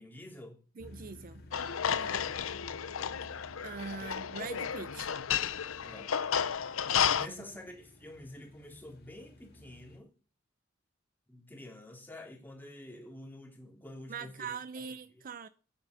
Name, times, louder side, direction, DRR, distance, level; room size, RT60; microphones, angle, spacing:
voice 1, 0.0-0.6 1.8-2.3 4.0-4.4 5.8-6.1 7.0-10.1 11.3-14.9 15.1-15.2, left 1 dB, 10° left, 2.9 m, -48 dB
sound 1, 0.8-10.0, left 1 dB, 50° left, 2.5 m, -54 dB
voice 2, 0.8-1.4 3.6-5.1 7.3-7.4 14.1-15.5, right 5 dB, 45° right, 0.6 m, -42 dB
sound 2, 1.5-7.3, left 8 dB, 85° left, 0.7 m, -32 dB
9.3 x 8.8 x 6.2 m
head